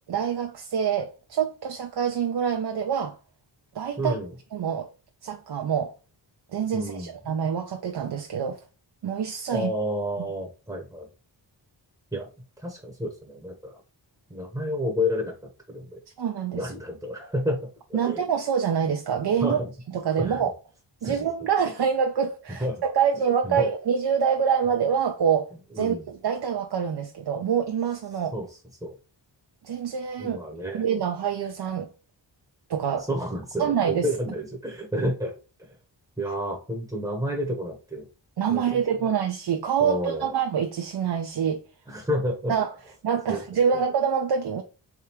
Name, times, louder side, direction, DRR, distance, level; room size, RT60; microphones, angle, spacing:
voice 1, 0.1-3.2 3.7-4.2 4.5-4.9 5.2-5.9 6.5-8.6 9.0-9.7 10.2-10.3 16.2-16.7 17.9-19.6 19.9-20.5 21.0-25.5 25.8-28.3 29.6-30.4 30.7-31.9 32.7-33.1 33.6-34.1 38.4-41.6 42.5-42.7 43.0-44.6, right 7 dB, 65° right, 0.6 m, -26 dB
voice 2, 4.0-4.3 6.7-7.1 9.5-11.1 12.1-12.3 12.6-13.7 14.3-15.4 15.7-16.0 16.5-17.6 17.9-18.2 19.4-19.7 20.2-20.5 21.0-21.2 22.6-22.8 23.4-23.7 25.7-26.1 28.3-28.4 28.8-29.0 30.2-30.8 33.1-35.3 36.2-38.1 38.5-38.8 39.8-40.3 41.9-42.5 43.3-43.4 43.7-43.8, equal, 5° right, 0.9 m, -30 dB
3.5 x 3.4 x 2.9 m
wide cardioid pair, 110°, 44 cm